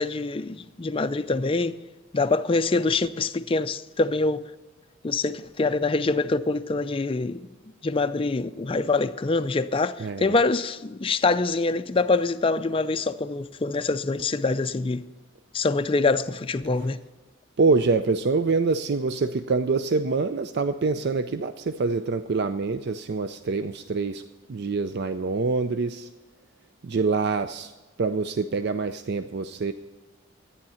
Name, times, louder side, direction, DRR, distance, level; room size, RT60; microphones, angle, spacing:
voice 1, 0.0-1.8 2.1-4.5 5.0-7.4 7.8-15.0 15.5-17.0, left 3 dB, 25° left, 0.4 m, -25 dB
voice 2, 10.0-10.4 16.8-16.9 17.6-24.2 24.5-26.1 26.8-27.7 28.0-29.7, right 4 dB, 50° right, 0.4 m, -25 dB
13.5 x 9.6 x 5.6 m
head